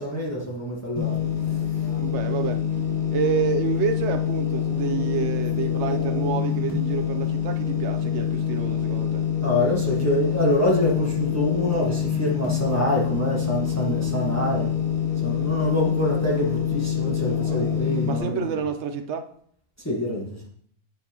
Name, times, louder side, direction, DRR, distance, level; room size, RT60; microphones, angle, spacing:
voice 1, 0.0-2.0 9.4-14.7 15.2-18.6 19.8-20.4, equal, 15° left, 1.4 m, -26 dB
sound 1, 1.0-18.2, left 8 dB, 65° left, 1.9 m, -26 dB
voice 2, 1.9-2.6 3.1-9.2 17.5-17.6 18.1-19.3, right 7 dB, 80° right, 1.0 m, -28 dB
9.0 x 5.8 x 2.9 m
omnidirectional pair, 1.1 m